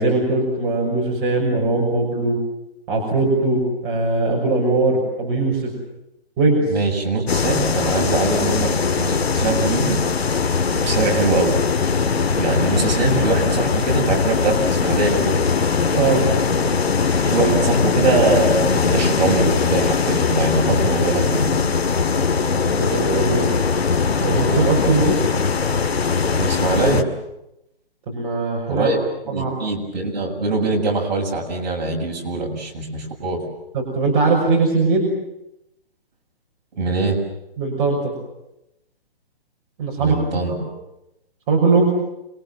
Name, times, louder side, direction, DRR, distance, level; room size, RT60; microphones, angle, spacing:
voice 1, 0.0-2.4 2.9-5.7 6.4-6.7 15.9-16.2 22.6-23.5 24.2-25.2 28.1-28.9 29.3-29.6 33.7-35.1 37.6-38.1 39.8-40.2 41.5-41.9, right 3 dB, 25° right, -2 dB, 6.2 m, -20 dB
voice 2, 6.7-8.7 9.0-10.0 10.7-11.6 12.4-15.4 17.2-21.4 26.3-27.0 28.7-29.0 29.3-33.4 36.8-37.2 40.0-40.5, right 3 dB, 45° right, 0 dB, 7.7 m, -22 dB
sound 1, 7.3-27.0, left 5 dB, 90° left, 2.3 m, -20 dB
27.5 x 23.5 x 7.6 m, 0.87 s
hypercardioid pair, 160°, 30 cm